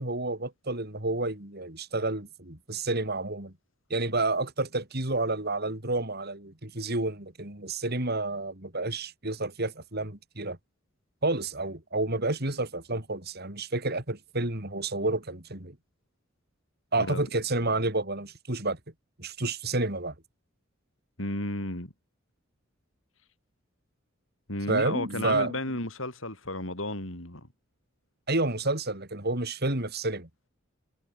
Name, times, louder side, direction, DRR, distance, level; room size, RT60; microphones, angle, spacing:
voice 1, 0.0-3.5 3.9-10.6 11.2-15.8 16.9-18.8 19.2-20.1 24.7-25.6 28.3-30.3, right 2 dB, 50° right, 4.1 m, -30 dB
voice 2, 21.2-21.9 24.5-27.5, left 1 dB, 70° left, 7.8 m, -33 dB
head